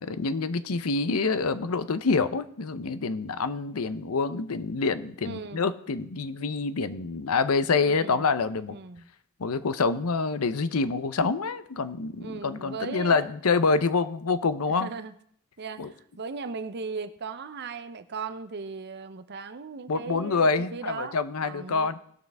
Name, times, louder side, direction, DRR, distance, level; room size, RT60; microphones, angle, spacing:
voice 1, 0.0-8.8 9.4-14.9 15.8-15.9 19.9-22.0, left 4 dB, 80° left, 13 dB, 0.7 m, -26 dB
voice 2, 5.2-5.6 7.8-8.3 8.7-9.1 12.2-13.3 14.7-15.1 15.6-21.2 21.4-22.0, right 4 dB, 50° right, 11 dB, 0.6 m, -37 dB
18.5 x 6.5 x 3.4 m, 0.65 s
head